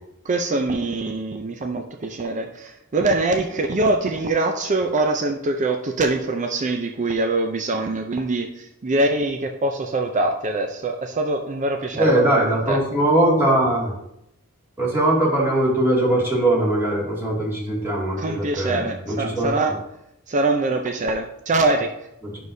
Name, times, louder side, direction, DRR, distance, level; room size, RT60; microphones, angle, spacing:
voice 1, 0.2-12.8 18.2-19.7 20.3-21.9, right 2 dB, 35° right, 5 dB, 0.5 m, -23 dB
voice 2, 11.9-13.9 14.8-19.6 22.2-22.3, right 1 dB, 10° right, -5 dB, 2.3 m, -21 dB
9.4 x 6.4 x 2.7 m, 0.82 s
head